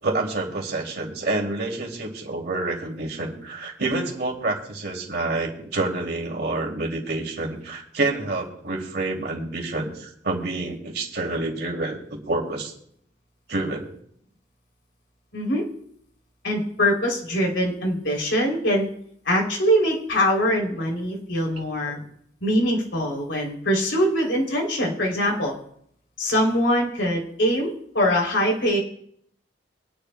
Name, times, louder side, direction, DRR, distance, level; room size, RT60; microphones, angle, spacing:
voice 1, 0.0-12.0 12.2-12.7 13.5-13.9 21.9-22.0, right 2 dB, 60° right, 0 dB, 2.6 m, -28 dB
voice 2, 15.3-15.6 16.4-18.9 19.2-22.0 22.4-25.5 26.2-28.8, equal, 75° left, -1 dB, 3.2 m, -23 dB
23.5 x 10.5 x 2.2 m, 0.67 s
head